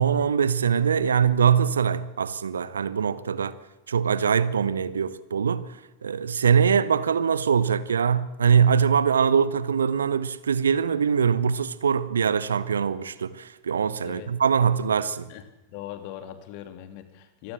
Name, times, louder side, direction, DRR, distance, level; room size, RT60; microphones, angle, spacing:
voice 1, 0.0-3.5 3.9-5.7 6.0-15.3, right 7 dB, 70° right, 1.1 m, -22 dB
voice 2, 15.7-17.5, left 11 dB, 45° left, 2.9 m, -40 dB
25.0 x 18.5 x 7.4 m
figure-of-eight pair, 90°, 0 cm